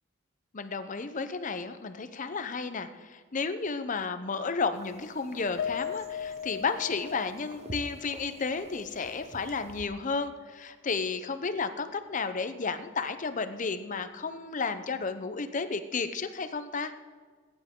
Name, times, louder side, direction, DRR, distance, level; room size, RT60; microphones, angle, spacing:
voice 1, 0.5-16.9, left 4 dB, 40° left, 10 dB, 0.7 m, -32 dB
sound 1, 4.7-9.8, right 2 dB, 35° right, 0.7 m, -49 dB
Piano, 5.6-10.1 10.4-10.6 11.0-11.1, left 8 dB, 80° left, 0.4 m, -39 dB
19.5 x 10.0 x 3.7 m, 1.5 s
head